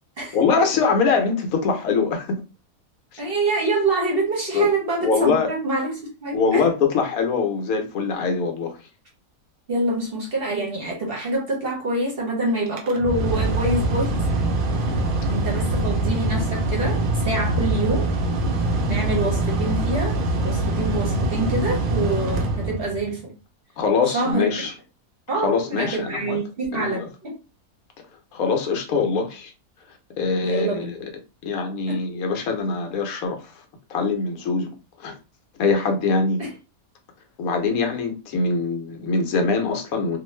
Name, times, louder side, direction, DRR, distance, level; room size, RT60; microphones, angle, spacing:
voice 1, 0.3-2.4 3.1-3.2 4.5-4.7 5.0-5.5 6.3-8.8 23.8-24.7 25.3-26.4 26.7-27.1 28.3-29.5 30.2-31.0 31.4-33.5 33.9-34.7 35.0-35.2 35.6-36.4 37.4-40.2, left 4 dB, 75° left, 1.1 m, -23 dB
voice 2, 3.2-6.6 9.7-14.2 15.3-18.1 18.9-20.2 20.4-23.3 24.1-24.7 25.3-27.3 30.4-30.9 31.9-32.0 36.4-36.5, right 2 dB, 50° right, 0.8 m, -26 dB
Mechanical fan, 12.7-23.2, right 2 dB, 70° right, 0.5 m, -23 dB
2.5 x 2.4 x 3.1 m
omnidirectional pair, 1.6 m